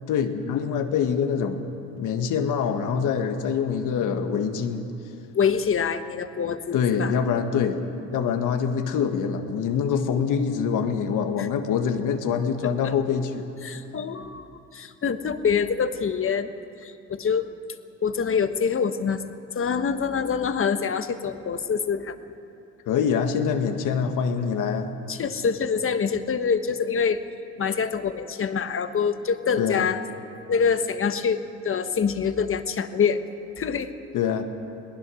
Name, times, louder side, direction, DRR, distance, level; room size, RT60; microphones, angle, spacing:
voice 1, 0.1-1.7 2.0-4.9 6.7-13.5 22.9-24.9 29.6-29.9 34.1-34.4, left 7 dB, 85° left, 6 dB, 1.7 m, -25 dB
voice 2, 5.3-7.1 11.4-11.5 12.8-12.9 13.6-14.5 14.7-16.5 16.8-17.5 18.0-19.2 19.5-22.2 25.1-27.2 27.6-30.0 30.5-33.2 33.6-33.9, left 6 dB, 45° left, 9 dB, 1.3 m, -25 dB
22.5 x 19.0 x 6.3 m, 2.7 s
cardioid pair, 90°, 30 cm